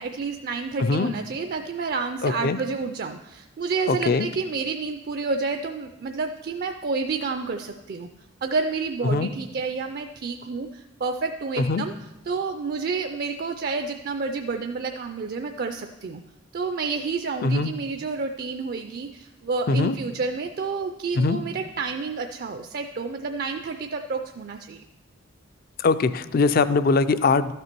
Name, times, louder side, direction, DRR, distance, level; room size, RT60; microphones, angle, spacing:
voice 1, 0.0-8.1 8.4-11.9 12.3-16.2 16.5-24.8, right 4 dB, 45° right, 6 dB, 0.4 m, -29 dB
voice 2, 0.8-1.1 2.2-2.6 3.9-4.3 9.1-9.3 11.6-11.8 17.4-17.7 19.7-20.0 21.2-21.4 25.8-27.5, left 3 dB, 45° left, 14 dB, 0.4 m, -21 dB
12.5 x 6.7 x 4.5 m, 0.98 s
head